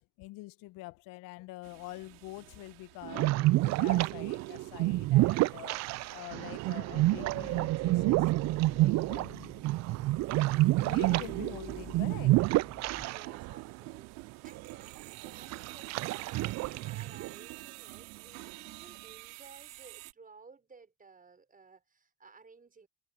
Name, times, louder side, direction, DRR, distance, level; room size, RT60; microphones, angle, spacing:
voice 1, 0.0-8.3 8.7-9.5 10.5-12.4, left 21 dB, 65° left, 1.1 m, -46 dB
sound 1, 1.6-20.1, right 29 dB, 75° right, 3.9 m, -49 dB
sound 2, 3.2-13.6 13.9-14.0 14.6-15.0 15.5-17.3, right 18 dB, 50° right, 0.5 m, -28 dB
sound 3, 6.9-13.1, right 1 dB, 5° right, 1.2 m, -51 dB
voice 2, 12.9-22.9, right 4 dB, 25° right, 5.8 m, -56 dB
supercardioid pair, 85°, 35 cm